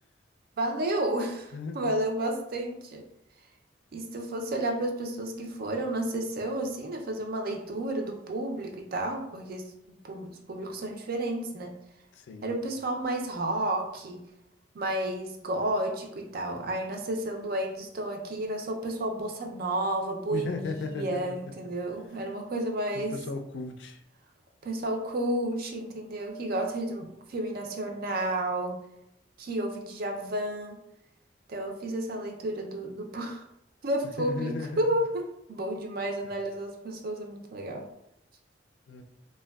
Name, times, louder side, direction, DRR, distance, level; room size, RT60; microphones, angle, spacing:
voice 1, 0.6-3.0 3.9-11.7 12.4-14.2 14.7-23.2 24.6-28.8 29.4-30.8 31.5-33.4 33.8-35.2 35.5-37.8, right 1 dB, 55° right, 3 dB, 0.4 m, -31 dB
voice 2, 1.5-1.9 12.1-12.5 20.3-21.2 22.9-24.0 34.2-35.0 38.9-39.0, left 3 dB, 85° left, 5 dB, 0.4 m, -36 dB
3.4 x 2.2 x 2.2 m, 0.80 s
head